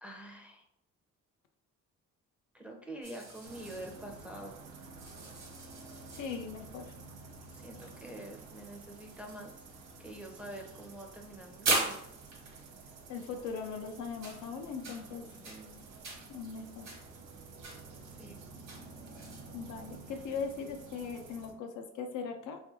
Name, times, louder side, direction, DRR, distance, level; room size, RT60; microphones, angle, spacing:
voice 1, 0.0-0.6 2.5-4.6 7.5-9.5 10.0-12.0 15.4-15.8 18.2-18.4, right 1 dB, 5° right, 0 dB, 0.5 m, -46 dB
sound 1, 3.0-21.3, right 3 dB, 65° right, 1.1 m, -42 dB
sound 2, 3.4-21.5, right 3 dB, 85° right, 0.5 m, -51 dB
voice 2, 6.2-6.9 13.1-15.3 16.3-16.9 19.5-22.6, left 5 dB, 75° left, 5 dB, 0.5 m, -39 dB
2.6 x 2.5 x 2.6 m, 0.75 s
cardioid pair, 90°, 30 cm